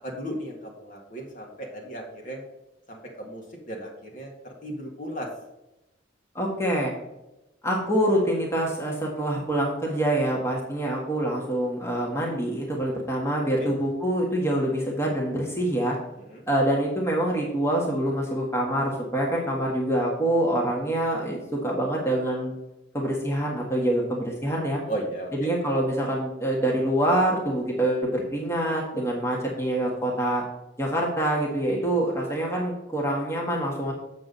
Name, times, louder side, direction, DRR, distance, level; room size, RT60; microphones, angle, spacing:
voice 1, 0.0-2.4 2.9-5.3 13.6-13.7 16.3-16.4 24.9-25.5, right 1 dB, 40° left, 0 dB, 1.9 m, -36 dB
voice 2, 6.3-6.9 7.6-16.0 16.5-22.5 22.9-24.8 25.4-30.4 30.8-33.9, right 1 dB, 15° left, -2 dB, 1.6 m, -25 dB
7.5 x 7.4 x 4.0 m, 0.93 s
head